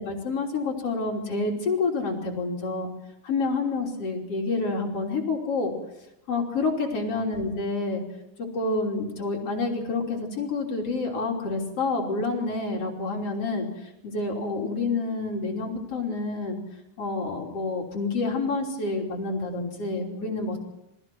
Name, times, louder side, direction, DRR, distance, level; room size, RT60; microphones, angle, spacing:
voice 1, 0.0-2.9 3.2-5.7 6.3-8.0 8.4-13.7 14.0-16.6 17.0-20.6, left 3 dB, 35° left, 0 dB, 3.7 m, -28 dB
28.0 x 20.5 x 4.6 m, 0.87 s
omnidirectional pair, 5.0 m